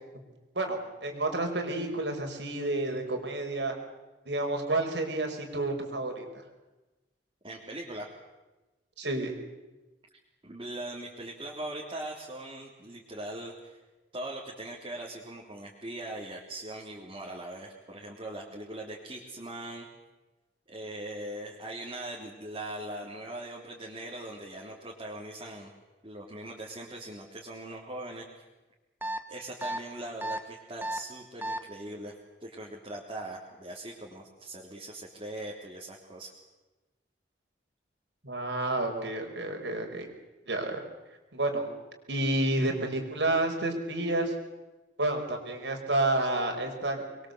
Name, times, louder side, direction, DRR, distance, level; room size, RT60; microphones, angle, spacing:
voice 1, 0.6-3.7 4.3-6.3 9.0-9.3 38.2-40.1 40.5-40.8 41.3-41.7 42.1-44.3 45.0-47.0, right 2 dB, 75° right, 3 dB, 5.1 m, -30 dB
voice 2, 7.4-8.1 10.4-13.8 14.1-19.9 20.7-25.7 26.0-28.3 29.3-36.3, right 1 dB, 30° right, -4 dB, 3.6 m, -40 dB
sound 1, 29.0-29.2 29.6-29.8 30.2-30.4 30.8-31.0 31.4-31.6, right 1 dB, 10° right, 1.4 m, -32 dB
25.5 x 22.5 x 8.1 m, 1.1 s
head